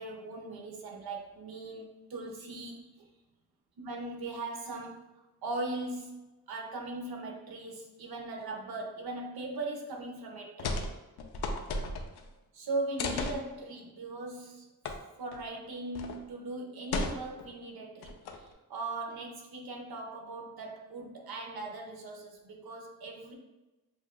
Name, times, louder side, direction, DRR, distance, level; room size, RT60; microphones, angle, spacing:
voice 1, 0.0-3.0 3.8-5.0 5.4-6.2 6.5-10.8 12.5-14.7 15.2-23.3, right 2 dB, 70° right, 0 dB, 1.0 m, -39 dB
sound 1, 10.6-10.9 11.2-12.3 13.0-13.4 14.8-15.0 15.3-15.4 15.9-16.2 16.9-17.5 18.0-18.5, left 3 dB, 85° left, 0.6 m, -34 dB
7.3 x 2.5 x 2.2 m, 1.1 s
cardioid pair, 75°, 38 cm